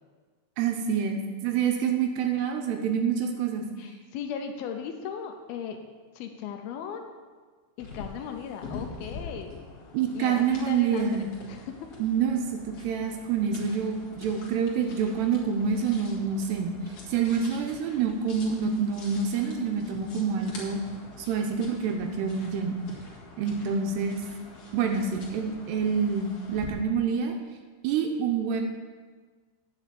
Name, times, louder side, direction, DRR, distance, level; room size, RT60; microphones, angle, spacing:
voice 1, 0.6-3.7 9.9-11.3 12.0-16.8 17.1-20.8 21.3-22.8 23.4-24.2 24.7-27.4 27.8-28.6, right 6 dB, 80° right, 4 dB, 2.7 m, -27 dB
voice 2, 3.8-5.8 6.2-7.0 7.8-9.5 10.1-11.8, left 7 dB, 80° left, 5 dB, 2.3 m, -37 dB
sound 1, 7.8-26.7, left 4 dB, 45° left, 2.3 m, -45 dB
9.8 x 6.1 x 7.5 m, 1.4 s
omnidirectional pair, 5.0 m